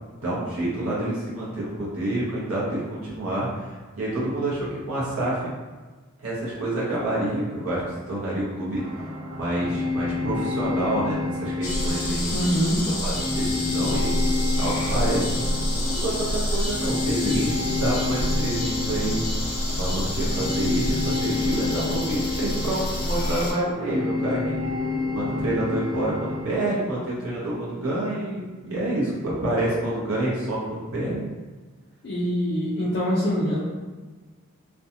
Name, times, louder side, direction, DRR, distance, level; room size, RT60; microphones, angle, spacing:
voice 1, 0.2-5.5 6.2-9.1 9.3-12.3 12.8-14.1 14.6-19.2 19.7-24.6 25.1-31.2, right 1 dB, 75° right, -6 dB, 0.7 m, -28 dB
sound 1, 8.8-26.7, left 3 dB, 30° right, 0.4 m, -30 dB
sound 2, 11.6-23.5, left 1 dB, 80° left, 0.8 m, -28 dB
voice 2, 12.3-12.8 32.0-33.6, equal, 50° left, -9 dB, 0.5 m, -24 dB
2.4 x 2.2 x 2.7 m, 1.3 s
head